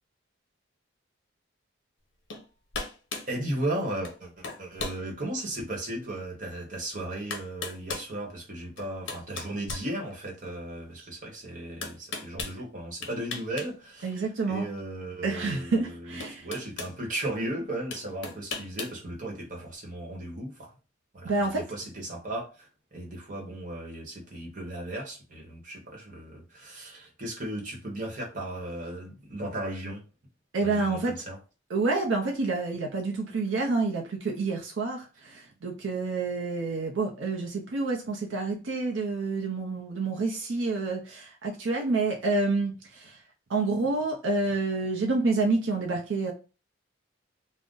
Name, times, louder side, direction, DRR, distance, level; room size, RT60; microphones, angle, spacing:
sound 1, 2.3-2.5 2.7-3.3 4.0-4.2 4.4-5.0 5.6-5.7 6.8-6.9 7.3-8.1 8.8-10.4 11.8-12.6 13.0-13.7 14.0-14.1 15.6-15.7 16.2-17.0 17.9-19.0, left 4 dB, 70° left, 0.7 m, -37 dB
voice 1, 3.3-14.2 14.5-20.7 21.1-30.0 30.6-31.4, right 1 dB, 40° right, 1.0 m, -36 dB
voice 2, 14.0-14.7 15.2-16.5 21.2-21.6 30.5-31.1 31.7-43.2 43.5-46.3, right 3 dB, 80° right, 0.5 m, -28 dB
2.5 x 2.1 x 3.7 m
head